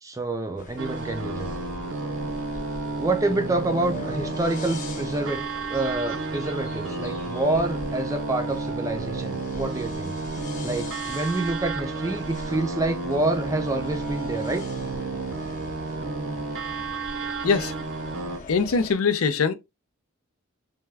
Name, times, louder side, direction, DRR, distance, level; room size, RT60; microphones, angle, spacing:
voice 1, 0.0-1.5 3.0-10.1 10.6-14.6, right 2 dB, 15° right, 0.4 m, -27 dB
sound 1, 0.6-19.0, left 2 dB, 35° left, 0.6 m, -41 dB
sound 2, 0.8-18.4, right 3 dB, 65° right, 0.5 m, -32 dB
voice 2, 17.4-17.7 18.5-19.5, left 5 dB, 85° left, 0.5 m, -22 dB
3.5 x 2.2 x 3.3 m
head